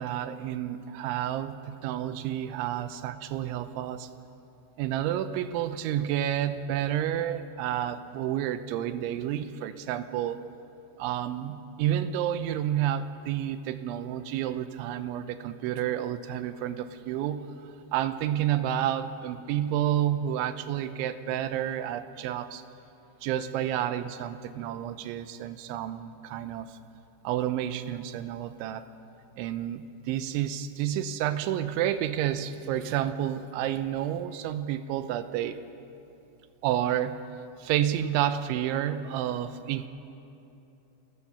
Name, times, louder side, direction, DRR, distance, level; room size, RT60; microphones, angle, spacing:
voice 1, 0.0-4.1 4.8-10.5 11.0-22.6 23.2-26.8 27.2-28.9 29.4-35.6 36.6-37.2 37.6-39.9, right 11 dB, 85° right, 11 dB, 3.1 m, -30 dB
28.5 x 14.5 x 7.1 m, 2.9 s
omnidirectional pair, 5.4 m